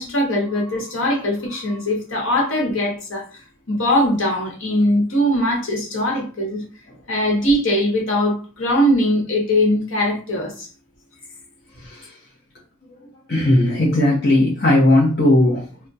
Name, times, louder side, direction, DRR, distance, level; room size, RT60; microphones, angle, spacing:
voice 1, 0.0-3.4 3.7-6.6 7.1-10.7, equal, 80° left, -2 dB, 1.0 m, -21 dB
voice 2, 13.3-15.6, left 1 dB, 50° left, -5 dB, 0.7 m, -16 dB
2.3 x 2.2 x 3.9 m, 0.38 s
head